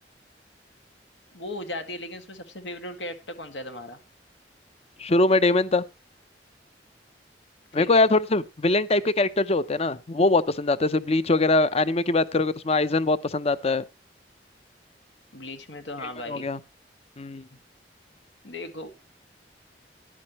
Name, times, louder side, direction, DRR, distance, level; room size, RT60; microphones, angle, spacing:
voice 1, 1.3-4.0 7.8-7.9 15.3-16.5 18.4-19.1, left 1 dB, 90° left, 2.1 m, -37 dB
voice 2, 5.0-5.8 7.7-13.8 16.3-16.6 17.2-17.4, left 2 dB, 35° left, 0.7 m, -22 dB
13.5 x 11.0 x 3.0 m
head